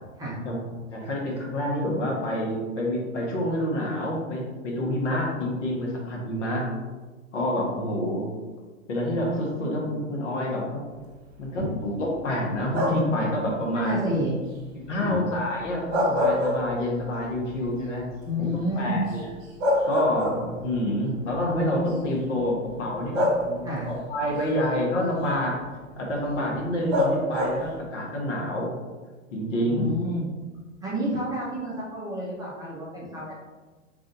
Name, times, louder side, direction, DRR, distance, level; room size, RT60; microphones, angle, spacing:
voice 1, 0.9-6.8 7.3-8.3 8.9-10.8 11.4-14.0 14.7-18.0 18.4-19.3 19.8-25.6 26.0-28.7 29.3-29.9, left 1 dB, 65° left, -2 dB, 1.3 m, -28 dB
sound 1, 12.7-13.2 15.7-17.1 17.5-17.6 19.1-19.2 19.6-20.7 21.8-21.9 23.1-23.9 26.9-27.8, equal, 50° right, 1.1 m, -25 dB
voice 2, 13.7-14.4 15.0-15.3 18.2-19.0 23.6-23.9 29.6-30.3 30.8-33.3, equal, 10° right, -7 dB, 0.7 m, -29 dB
3.2 x 2.6 x 3.8 m, 1.3 s
hypercardioid pair, 125°, 39 cm